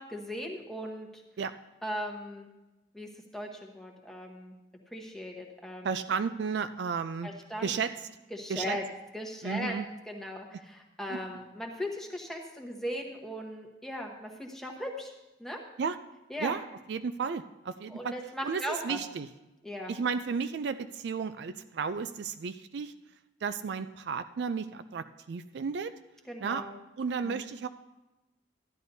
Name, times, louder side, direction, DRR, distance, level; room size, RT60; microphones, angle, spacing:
voice 1, 0.0-1.2 1.8-2.5 2.9-4.6 4.9-5.9 7.2-7.7 8.3-8.8 9.1-9.8 10.1-15.1 15.4-15.6 16.3-16.5 17.9-19.0 19.6-19.9 26.3-26.7 27.2-27.5, equal, ahead, 0 dB, 1.0 m, -38 dB
voice 2, 5.8-7.3 7.6-7.9 8.5-8.8 9.4-9.8 11.1-11.2 15.8-16.0 16.4-16.6 16.9-18.1 18.4-19.3 19.9-22.9 23.4-25.9 26.4-26.6 27.0-27.7, right 5 dB, 65° right, 10 dB, 0.3 m, -33 dB
13.5 x 11.0 x 2.7 m, 1.0 s
head